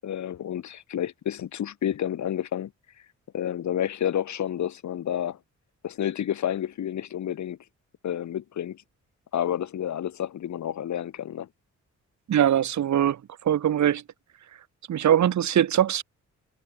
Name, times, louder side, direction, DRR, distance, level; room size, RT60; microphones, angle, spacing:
voice 1, 0.0-2.7 3.3-5.4 5.8-7.6 8.0-8.8 9.3-11.5, left 10 dB, 70° left, 7.3 m, -30 dB
voice 2, 12.3-13.2 13.5-14.0 14.9-16.0, right 10 dB, 70° right, 7.2 m, -21 dB
wide cardioid pair, 170°, 29 cm